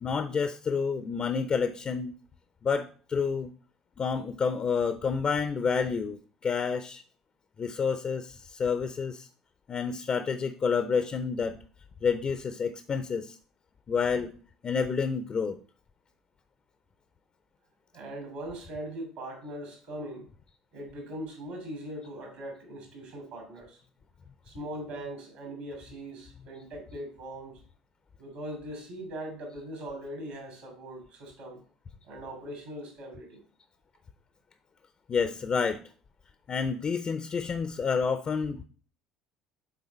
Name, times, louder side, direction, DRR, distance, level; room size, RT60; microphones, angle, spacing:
voice 1, 0.0-2.1 2.6-3.5 4.0-7.0 7.6-9.3 9.7-11.6 12.0-13.4 13.9-14.3 14.6-15.6 35.1-35.8 36.5-38.6, left 5 dB, 35° left, 9 dB, 0.5 m, -29 dB
voice 2, 17.9-20.3 20.7-23.8 24.4-27.6 28.2-31.6 32.0-33.4, right 1 dB, 65° right, 1 dB, 2.8 m, -40 dB
6.7 x 3.9 x 4.1 m, 0.41 s
figure-of-eight pair, 60°, 3 cm